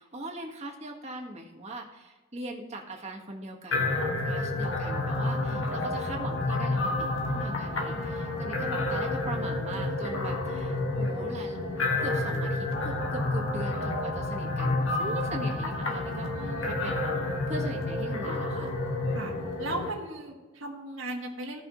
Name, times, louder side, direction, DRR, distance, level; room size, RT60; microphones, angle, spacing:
voice 1, 0.0-11.6 12.0-17.2 17.5-18.7, right 1 dB, 35° right, 0 dB, 1.5 m, -40 dB
sound 1, 3.7-19.9, left 2 dB, 70° left, 1.4 m, -30 dB
voice 2, 19.6-21.6, right 1 dB, 70° right, -1 dB, 1.8 m, -36 dB
16.5 x 5.6 x 3.1 m, 1.2 s
head